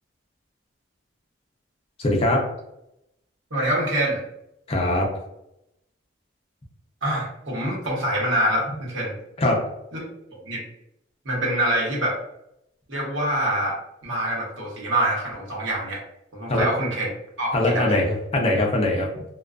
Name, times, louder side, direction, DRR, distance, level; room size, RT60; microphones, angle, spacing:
voice 1, 2.0-2.5 4.7-5.1 9.4-9.7 16.5-16.7 17.5-18.0 18.3-19.2, left 1 dB, 30° left, 0 dB, 0.5 m, -21 dB
voice 2, 3.5-4.2 7.0-9.1 9.9-10.0 10.4-10.6 11.2-12.2 12.9-13.8 14.0-16.0 16.3-17.1 17.4-18.0, right 1 dB, 85° right, -3 dB, 0.9 m, -25 dB
2.4 x 2.2 x 2.3 m, 0.82 s
head